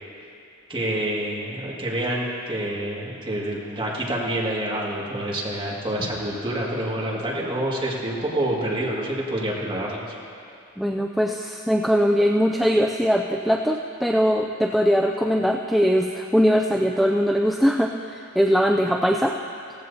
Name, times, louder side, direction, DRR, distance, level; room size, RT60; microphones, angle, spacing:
voice 1, 0.7-10.0, right 1 dB, 25° right, -5 dB, 2.0 m, -27 dB
voice 2, 10.8-19.3, equal, ahead, 1 dB, 0.3 m, -21 dB
17.0 x 15.0 x 2.8 m, 2.6 s
head